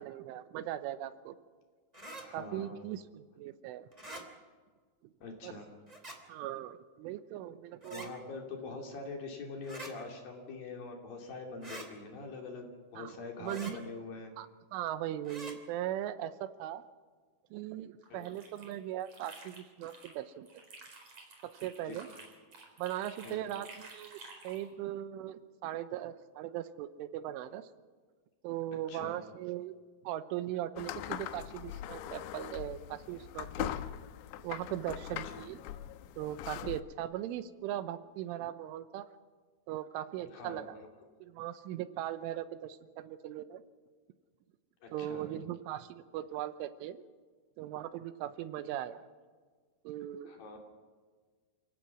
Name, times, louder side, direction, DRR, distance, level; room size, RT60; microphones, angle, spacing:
voice 1, 0.0-1.3 2.3-3.8 5.4-5.5 6.3-8.1 13.0-13.8 14.4-14.5 14.7-16.8 17.5-20.5 21.4-22.1 22.8-27.7 28.4-29.7 30.0-33.7 34.4-35.6 36.2-39.1 39.7-40.7 41.2-43.6 44.9-47.0 47.6-49.0 49.8-50.3, right 12 dB, 85° right, 12 dB, 3.3 m, -39 dB
sound 1, 1.9-2.2 3.9-4.2 5.9-6.2 7.8-8.1 9.6-9.9 11.6-11.9 13.4-13.7 15.2-15.5, right 2 dB, 15° right, 1.2 m, -45 dB
voice 2, 2.2-2.8 5.2-5.8 7.9-14.3 18.1-18.3 21.8-22.0 23.2-23.6 28.9-29.2 40.3-40.9 44.8-45.3 48.7-48.8 50.3-50.6, left 3 dB, 50° left, 2 dB, 4.2 m, -44 dB
sound 2, 18.0-20.2 20.5-24.7, right 3 dB, 35° right, 5.2 m, -52 dB
sound 3, 30.8-36.8, left 12 dB, 80° left, 2.6 m, -41 dB
28.5 x 17.5 x 6.1 m, 1.5 s
omnidirectional pair, 5.7 m